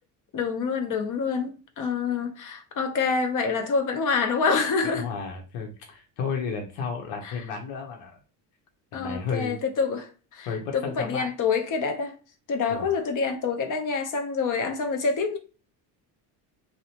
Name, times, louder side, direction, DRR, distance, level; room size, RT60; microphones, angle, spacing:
voice 1, 0.3-5.1 7.2-7.3 8.9-12.2 12.5-15.4, left 5 dB, 40° left, 0.7 m, -27 dB
voice 2, 4.9-8.2 8.9-9.6 10.5-11.3 12.7-12.9, left 5 dB, 75° left, 0.9 m, -32 dB
2.6 x 2.1 x 2.8 m
supercardioid pair, 100°, 47 cm